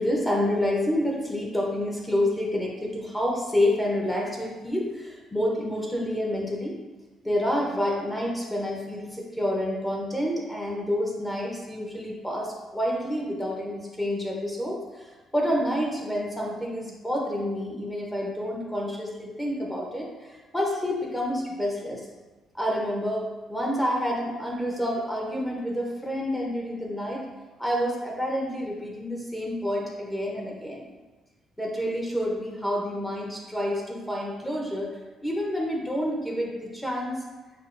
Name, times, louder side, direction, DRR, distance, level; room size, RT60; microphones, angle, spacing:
voice 1, 0.0-6.8 7.2-22.0 22.5-27.2 27.6-30.9 31.6-37.2, left 1 dB, 10° left, -2 dB, 0.6 m, -28 dB
6.4 x 2.3 x 2.4 m, 1.2 s
cardioid pair, 125°, 0 cm